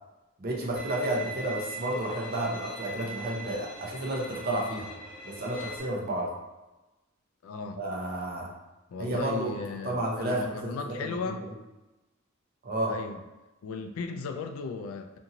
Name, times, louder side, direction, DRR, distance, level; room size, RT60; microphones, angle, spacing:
voice 1, 0.4-4.9 5.2-6.3 7.8-8.5 9.0-9.5 9.8-11.1 12.6-12.9, right 1 dB, 45° right, -1 dB, 0.6 m, -31 dB
Bowed string instrument, 0.8-5.8, right 1 dB, 10° left, 1.4 m, -41 dB
voice 2, 7.4-7.8 8.9-11.4 12.9-13.2 13.6-15.2, left 4 dB, 85° left, 6 dB, 0.3 m, -36 dB
2.6 x 2.6 x 2.8 m, 1.1 s
head